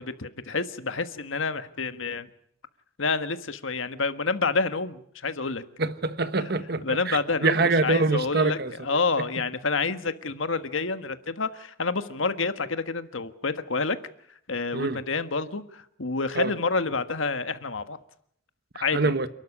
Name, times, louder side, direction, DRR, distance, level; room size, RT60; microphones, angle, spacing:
voice 1, 0.0-2.3 3.0-5.6 6.4-6.5 6.8-14.0 14.5-18.0 18.8-19.0, left 4 dB, 80° left, 10 dB, 1.5 m, -28 dB
voice 2, 5.8-8.7 14.7-15.0 16.3-16.5 18.7-19.3, right 3 dB, 55° right, 12 dB, 1.2 m, -25 dB
28.5 x 12.5 x 9.9 m, 0.71 s
head